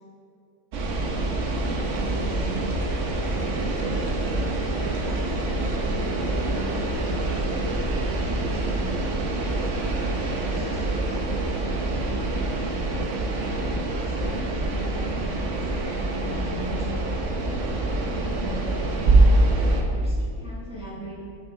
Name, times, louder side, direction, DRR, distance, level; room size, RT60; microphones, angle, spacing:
sound 1, 0.7-19.8, right 2 dB, 60° right, 1.1 m, -25 dB
voice 1, 1.9-2.7 3.5-7.5 8.0-9.0 9.4-13.0 13.5-16.9 17.4-19.3 19.9-21.1, right 2 dB, 5° right, -8 dB, 1.7 m, -40 dB
8.0 x 5.9 x 3.8 m, 2.5 s
omnidirectional pair, 1.5 m